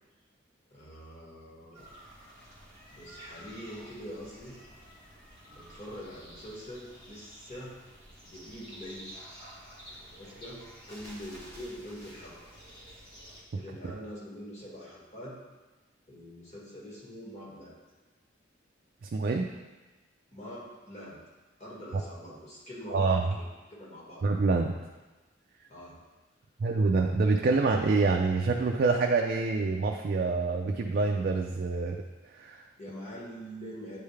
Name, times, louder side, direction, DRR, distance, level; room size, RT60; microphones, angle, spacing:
voice 1, 0.7-1.9 2.9-4.6 5.5-7.7 8.2-9.3 10.2-12.3 13.5-15.4 16.1-17.7 20.3-21.2 21.6-23.4 23.7-24.3 25.7-26.0 32.8-34.0, equal, 35° left, -6 dB, 1.7 m, -44 dB
sound 1, 1.7-13.4, equal, 55° left, 1.2 m, -50 dB
voice 2, 19.0-19.5 22.9-23.3 24.2-24.7 26.6-32.0 32.4-32.6, right 3 dB, 50° right, 2 dB, 0.4 m, -26 dB
8.9 x 3.5 x 3.3 m, 1.2 s
head